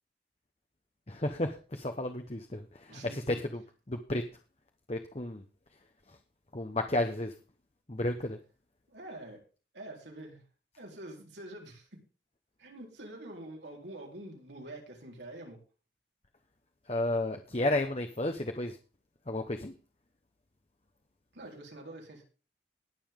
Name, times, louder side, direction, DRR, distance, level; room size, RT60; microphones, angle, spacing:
voice 1, 1.1-3.6 3.9-4.2 4.9-5.4 6.1-6.2 6.5-7.3 7.9-8.4 16.9-18.8 19.3-19.7, left 1 dB, 35° left, 5 dB, 1.0 m, -32 dB
voice 2, 2.9-3.4 8.9-9.4 9.7-10.4 10.8-12.0 12.6-15.6 21.3-22.2, right 1 dB, 85° right, 0 dB, 4.3 m, -46 dB
20.0 x 7.0 x 3.7 m, 0.36 s
head